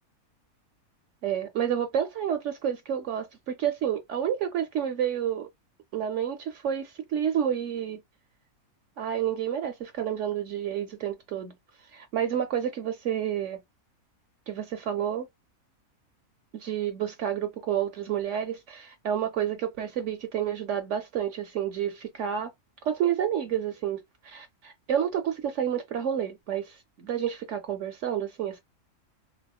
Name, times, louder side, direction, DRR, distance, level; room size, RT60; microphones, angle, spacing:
voice 1, 1.2-5.5 5.9-8.0 9.0-11.5 11.9-13.6 14.5-15.3 16.5-22.5 22.8-28.6, right 9 dB, 65° right, 0.8 m, -29 dB
4.1 x 2.1 x 2.2 m
omnidirectional pair, 1.6 m